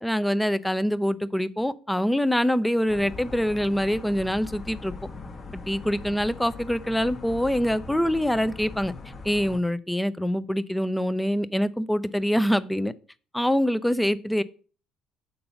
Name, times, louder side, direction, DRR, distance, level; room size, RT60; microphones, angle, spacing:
voice 1, 0.0-4.9 5.5-8.9 9.2-12.9 13.3-14.4, equal, 5° left, 0.4 m, -25 dB
sound 1, 2.9-9.6, left 3 dB, 35° left, 1.1 m, -41 dB
6.8 x 3.9 x 5.7 m
cardioid pair, 100°, 0 cm